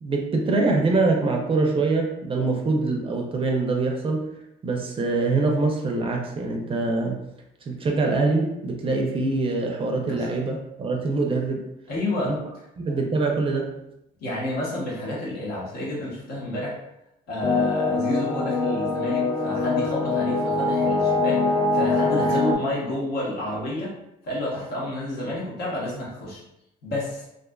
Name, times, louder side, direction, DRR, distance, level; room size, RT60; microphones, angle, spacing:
voice 1, 0.0-4.2 4.6-7.2 7.7-11.6 12.2-12.4 12.8-13.7, right 3 dB, 35° right, 1 dB, 0.4 m, -24 dB
voice 2, 11.9-12.4 14.2-16.8 17.3-23.9 24.2-26.4 26.8-27.3, left 1 dB, 70° left, -4 dB, 1.0 m, -30 dB
sound 1, 17.4-22.6, left 3 dB, 30° left, 0.4 m, -23 dB
2.4 x 2.3 x 2.2 m, 0.86 s
cardioid pair, 110°, 17 cm